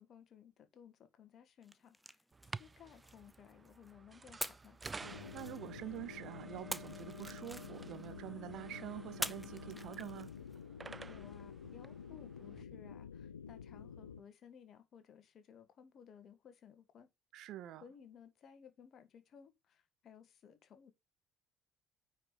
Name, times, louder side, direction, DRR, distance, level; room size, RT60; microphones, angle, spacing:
voice 1, 0.0-4.8 11.1-17.1 17.8-20.9, left 8 dB, 45° left, 1.6 m, -59 dB
sound 1, 1.6-3.9 4.4-6.0 6.7-8.1 9.2-10.6, equal, ahead, 0.7 m, -46 dB
sound 2, 2.3-12.6, right 4 dB, 25° right, 0.3 m, -52 dB
sound 3, 5.0-14.2, left 7 dB, 80° left, 0.4 m, -50 dB
voice 2, 5.3-10.3 17.3-17.8, right 13 dB, 55° right, 0.7 m, -46 dB
9.4 x 4.9 x 4.0 m
figure-of-eight pair, 55°, 0 cm